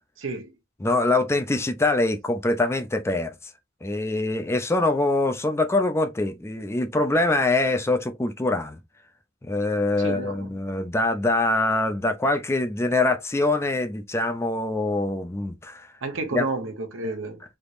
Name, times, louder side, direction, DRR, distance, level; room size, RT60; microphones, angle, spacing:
voice 1, 0.2-0.5 10.0-10.5 16.0-17.4, right 3 dB, 75° right, 0.9 m, -31 dB
voice 2, 0.8-3.5 3.8-8.8 9.4-15.9 16.3-16.4, left 2 dB, 15° left, 0.4 m, -24 dB
3.4 x 2.9 x 2.5 m
head